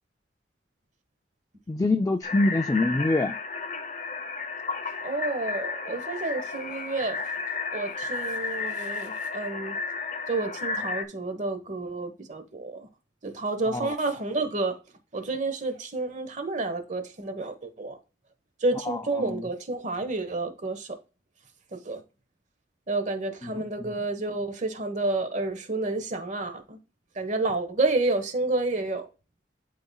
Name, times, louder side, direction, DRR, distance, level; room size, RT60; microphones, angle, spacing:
voice 1, 1.7-3.4 13.7-13.9 18.9-19.0 19.3-19.4 23.4-23.5, left 2 dB, 20° left, 0.3 m, -25 dB
sound 1, 2.2-11.0, left 4 dB, 45° left, 0.7 m, -33 dB
voice 2, 5.0-7.2 7.7-9.7 10.3-12.9 13.2-14.7 15.1-18.0 18.6-21.0 21.7-22.0 22.9-26.8 27.2-29.0, right 2 dB, 45° right, 1.2 m, -30 dB
11.5 x 4.2 x 2.3 m
head